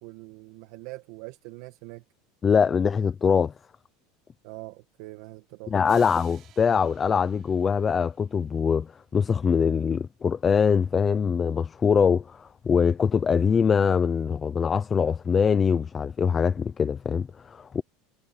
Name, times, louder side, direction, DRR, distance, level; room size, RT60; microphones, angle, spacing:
voice 1, 0.0-2.0 4.4-5.7 6.0-6.1, right 20 dB, 55° right, 1.6 m, -43 dB
voice 2, 2.4-3.5 5.7-8.9 9.1-17.8, left 6 dB, 20° left, 0.7 m, -23 dB
sound 1, 5.8-8.5, right 13 dB, 35° right, 5.6 m, -54 dB
supercardioid pair, 165°, 0 cm